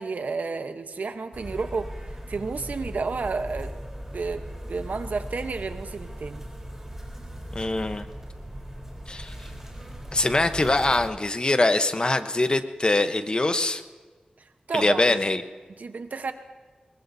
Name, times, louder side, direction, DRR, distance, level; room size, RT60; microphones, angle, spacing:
voice 1, 0.0-1.9 2.3-3.7 4.1-4.4 4.7-6.4 14.7-15.2 15.8-16.3, right 4 dB, 75° right, 8 dB, 1.0 m, -31 dB
sound 1, 1.3-11.1, equal, 15° right, 3.9 m, -38 dB
voice 2, 7.5-8.1 9.1-9.3 10.1-13.8 14.7-15.4, left 2 dB, 35° left, 9 dB, 0.9 m, -23 dB
23.5 x 21.5 x 2.7 m, 1.4 s
wide cardioid pair, 70°, 3 cm